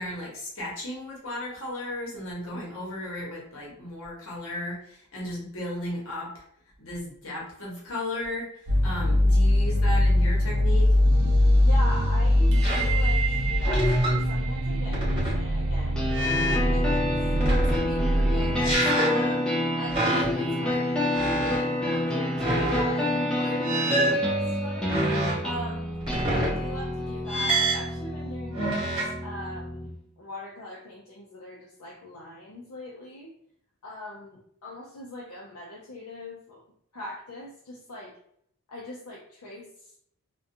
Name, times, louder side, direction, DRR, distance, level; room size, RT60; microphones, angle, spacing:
voice 1, 0.0-6.4 6.8-11.0, left 1 dB, 65° left, -4 dB, 1.0 m, -35 dB
sound 1, 8.7-18.7, left 1 dB, 70° right, 0.5 m, -22 dB
voice 2, 11.6-29.9 30.2-33.3 33.8-36.6 36.9-38.1 38.7-40.0, left 1 dB, 80° left, -3 dB, 0.5 m, -40 dB
sound 2, 12.6-12.9 13.6-15.8 16.1-16.8 17.4-18.1 18.6-19.3 19.9-20.7 21.1-21.7 22.4-23.0 23.6-25.4 26.0-26.9 27.3-27.9 28.5-29.2, right 1 dB, 25° right, 1.0 m, -27 dB
sound 3, 16.0-29.9, left 1 dB, 5° left, 0.3 m, -29 dB
2.4 x 2.2 x 2.6 m, 0.69 s
head